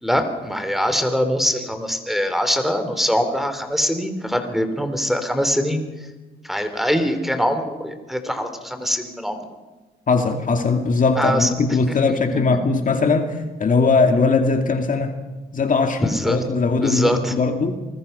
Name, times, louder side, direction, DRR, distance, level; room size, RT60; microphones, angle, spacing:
voice 1, 0.0-5.8 6.4-9.4 11.2-11.5 12.1-12.4 16.0-16.4 16.8-17.3, equal, ahead, 9 dB, 3.1 m, -23 dB
voice 2, 10.1-15.1 15.5-17.8, left 4 dB, 40° left, 5 dB, 2.3 m, -20 dB
27.5 x 21.0 x 5.5 m, 1.2 s
cardioid pair, 90°, 20 cm